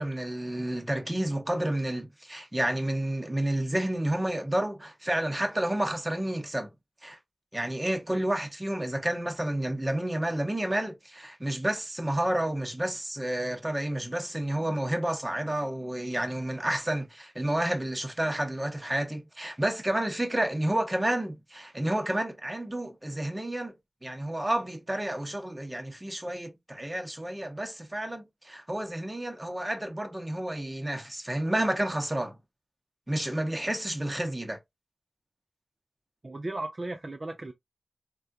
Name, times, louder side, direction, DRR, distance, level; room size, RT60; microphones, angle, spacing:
voice 1, 0.0-6.7 7.0-7.2 7.5-23.8 24.0-32.4 33.1-34.6, right 1 dB, 20° right, 0.9 m, -30 dB
voice 2, 36.2-37.5, right 2 dB, 40° right, 0.4 m, -35 dB
3.4 x 2.3 x 2.6 m
wide cardioid pair, 65°, 0 cm